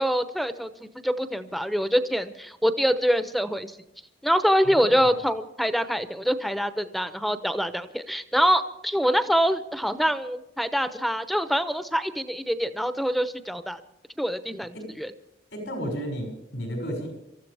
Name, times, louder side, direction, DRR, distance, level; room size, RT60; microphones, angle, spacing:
voice 1, 0.0-3.8 4.2-13.8 14.2-15.1, equal, ahead, 10 dB, 0.7 m, -25 dB
voice 2, 4.6-5.2 14.7-14.8 15.5-17.1, equal, 75° left, 1 dB, 6.2 m, -33 dB
26.0 x 14.0 x 3.4 m, 0.85 s
head